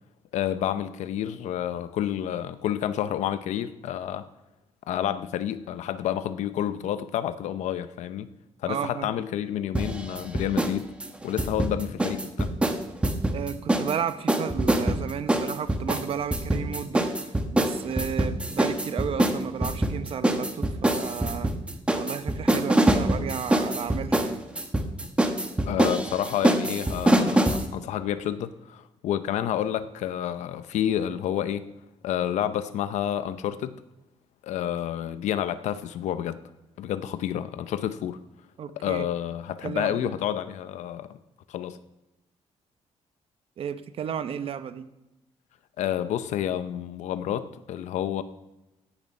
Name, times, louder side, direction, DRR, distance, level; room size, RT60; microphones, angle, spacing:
voice 1, 0.3-4.3 4.9-8.3 8.6-10.9 11.2-12.5 25.7-31.7 32.0-33.8 34.4-36.4 36.8-38.2 38.8-41.2 41.5-41.8 45.8-48.2, left 10 dB, 90° left, 12 dB, 0.6 m, -29 dB
voice 2, 8.7-9.1 13.3-21.6 21.9-24.4 38.6-39.1 39.6-40.2 43.6-44.9, right 8 dB, 55° right, 12 dB, 0.8 m, -33 dB
sound 1, 9.8-10.8 11.0-14.0 14.3-27.7, right 1 dB, 10° right, 1.0 m, -24 dB
17.0 x 7.3 x 5.4 m, 0.97 s
cardioid pair, 145°, 12 cm